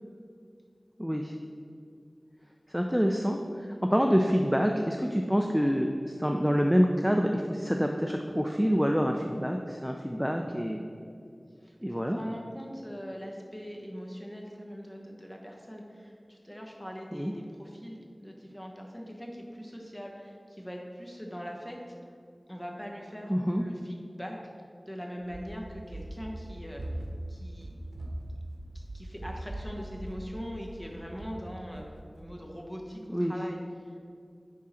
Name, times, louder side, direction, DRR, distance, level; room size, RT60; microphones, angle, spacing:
voice 1, 1.0-1.3 2.7-10.8 11.8-12.2 17.1-17.3 23.3-23.6 33.1-33.3, equal, ahead, 2 dB, 0.4 m, -27 dB
voice 2, 11.6-22.0 22.5-23.3 23.6-24.4 24.9-27.0 27.3-27.8 28.7-34.0, equal, 15° left, 0 dB, 1.2 m, -42 dB
Run, 25.2-32.3, right 1 dB, 75° right, 0.9 m, -41 dB
9.7 x 3.7 x 4.3 m, 2.4 s
wide cardioid pair, 50°, 0 cm